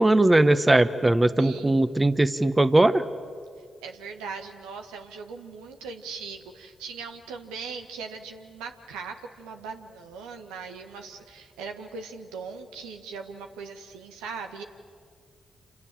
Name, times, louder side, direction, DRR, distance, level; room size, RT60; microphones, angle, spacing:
voice 1, 0.0-3.0, right 2 dB, 20° right, 12 dB, 1.3 m, -20 dB
voice 2, 1.4-1.8 3.8-14.6, right 5 dB, 85° right, 5 dB, 1.5 m, -39 dB
28.0 x 27.5 x 7.6 m, 2.1 s
hypercardioid pair, 40°, 0 cm